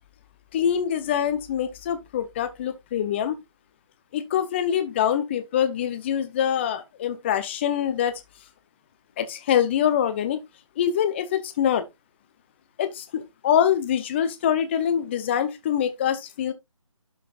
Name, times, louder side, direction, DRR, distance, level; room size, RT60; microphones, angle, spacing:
voice 1, 0.5-3.4 4.1-8.2 9.2-10.4 10.8-11.8 12.8-16.5, left 9 dB, 20° left, 0.8 m, -24 dB
12.0 x 5.8 x 2.5 m
figure-of-eight pair, 155°, 17 cm